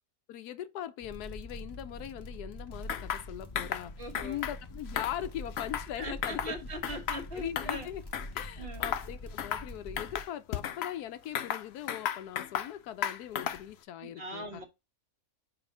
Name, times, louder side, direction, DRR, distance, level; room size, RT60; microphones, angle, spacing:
voice 1, 0.3-3.9 4.2-6.5 7.3-8.0 8.3-14.6, left 11 dB, 90° left, 1.2 m, -40 dB
sound 1, 1.0-10.2, left 1 dB, 20° left, 0.7 m, -44 dB
sound 2, 2.9-3.3 3.6-3.9 4.1-4.6 4.9-5.9 6.2-6.5 6.8-7.8 8.1-8.5 8.8-9.1 9.4-9.7 10.0-10.9 11.4-12.7 13.0-13.7, left 9 dB, 60° left, 0.6 m, -34 dB
voice 2, 4.0-4.4 6.0-7.9 8.6-8.9 14.0-14.6, right 1 dB, 40° right, 1.4 m, -40 dB
5.5 x 4.2 x 5.3 m
omnidirectional pair, 1.6 m